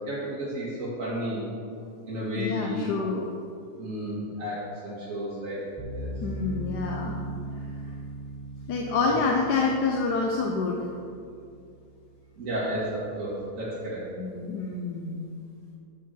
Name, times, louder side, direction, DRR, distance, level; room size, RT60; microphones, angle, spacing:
voice 1, 0.1-1.4 2.1-2.9 3.8-5.6 5.9-6.1 9.0-9.2 12.4-14.0, right 1 dB, 50° right, -9 dB, 2.0 m, -32 dB
voice 2, 2.3-3.3 6.2-7.2 8.7-10.9 14.2-15.3, left 4 dB, 90° left, 1 dB, 1.3 m, -27 dB
sound 1, 5.8-12.9, right 1 dB, 10° right, 1.2 m, -39 dB
9.3 x 4.6 x 6.2 m, 2.4 s
omnidirectional pair, 1.7 m